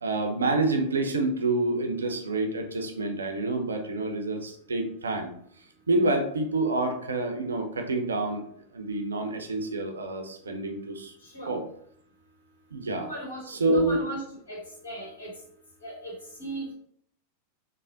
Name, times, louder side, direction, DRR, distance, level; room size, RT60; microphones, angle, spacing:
voice 1, 0.0-5.3 5.9-8.4 8.7-11.1 11.5-11.6 12.7-13.1 13.5-14.0, right 2 dB, 70° right, 5 dB, 0.4 m, -27 dB
voice 2, 11.2-11.6 12.9-15.3 15.8-16.7, right 1 dB, 70° left, -3 dB, 1.1 m, -38 dB
3.3 x 2.0 x 2.5 m, 0.66 s
figure-of-eight pair, 90°, 0 cm